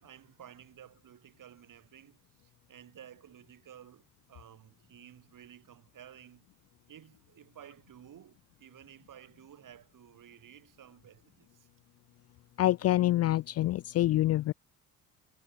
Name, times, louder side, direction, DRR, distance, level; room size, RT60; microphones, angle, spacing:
voice 1, 0.0-6.5 6.9-11.7, right 10 dB, 50° right, 5.1 m, -54 dB
voice 2, 12.6-14.5, left 15 dB, 40° left, 0.4 m, -26 dB
figure-of-eight pair, 50°, 41 cm